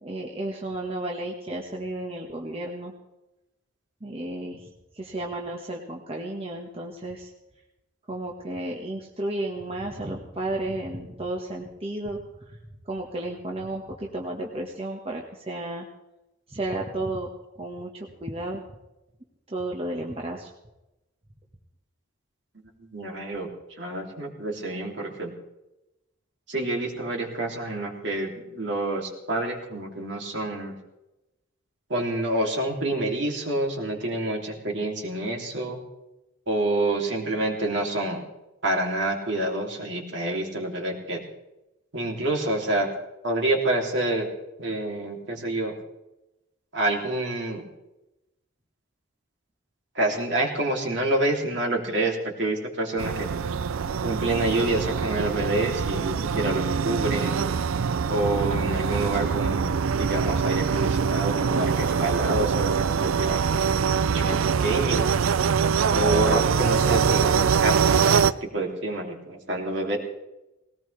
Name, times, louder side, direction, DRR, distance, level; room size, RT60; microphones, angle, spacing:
voice 1, 0.0-2.9 4.0-4.7 4.9-7.3 8.1-12.6 12.8-15.8 16.5-17.3 17.6-18.6 19.5-20.5, right 1 dB, 30° right, 0 dB, 1.4 m, -33 dB
voice 2, 22.9-23.5 23.8-25.3 26.5-30.8 31.9-35.8 36.5-38.2 38.6-41.2 41.9-42.9 43.2-44.3 44.6-45.8 46.7-47.6 49.9-53.3 54.0-57.4 58.1-59.7 60.0-65.1 65.9-70.0, right 1 dB, 60° right, 1 dB, 3.0 m, -27 dB
sound 1, 53.0-68.3, right 6 dB, 85° right, 0.5 m, -24 dB
20.0 x 18.0 x 3.4 m, 0.97 s
head